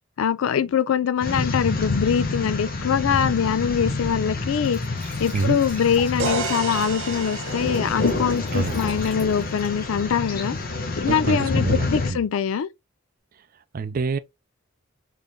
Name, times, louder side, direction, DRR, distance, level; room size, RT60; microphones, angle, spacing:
voice 1, 0.2-4.8 5.2-10.6 11.0-12.7, left 7 dB, 85° left, 0.4 m, -23 dB
sound 1, 1.2-12.1, left 3 dB, 45° left, 0.8 m, -28 dB
Glass / Trickle dribble / Fill (with liquid), 3.3-10.7, left 1 dB, 5° left, 2.1 m, -46 dB
sound 2, 6.2-10.0, right 4 dB, 80° right, 0.9 m, -33 dB
voice 2, 11.1-12.2 13.7-14.2, right 4 dB, 45° right, 0.4 m, -26 dB
3.8 x 3.2 x 2.4 m
head